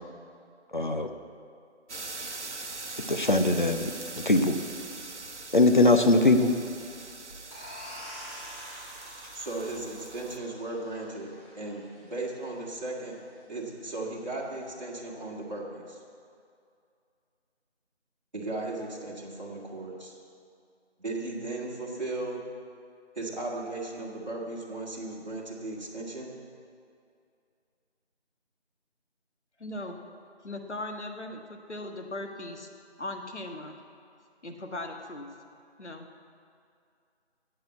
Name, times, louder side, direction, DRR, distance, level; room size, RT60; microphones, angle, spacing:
voice 1, 0.7-1.1 3.1-3.9 4.3-4.6 5.5-6.5, left 2 dB, 45° left, 6 dB, 0.8 m, -21 dB
sound 1, 1.9-10.4, right 3 dB, 80° right, 1.0 m, -42 dB
sound 2, 7.5-12.9, equal, 25° left, 3.2 m, -46 dB
voice 2, 9.3-13.2 13.5-16.0 18.3-20.2 21.0-22.4 23.2-26.3, right 2 dB, 40° right, -4 dB, 2.1 m, -36 dB
voice 3, 29.6-30.0 30.4-32.7 33.0-33.8 34.4-35.3 35.8-36.1, left 1 dB, 80° left, 4 dB, 1.5 m, -38 dB
9.4 x 7.9 x 8.4 m, 2.4 s
figure-of-eight pair, 170°, 34 cm